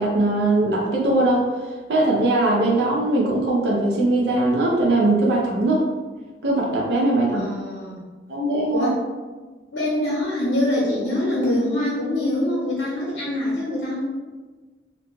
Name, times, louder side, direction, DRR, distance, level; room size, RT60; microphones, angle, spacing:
voice 1, 0.0-1.5 1.9-5.9 6.4-7.5 8.3-8.9, right 2 dB, 65° right, -3 dB, 0.5 m, -20 dB
voice 2, 7.3-8.1 8.7-9.0 9.7-14.0, left 1 dB, 70° left, -5 dB, 0.7 m, -24 dB
2.5 x 2.2 x 3.0 m, 1.3 s
head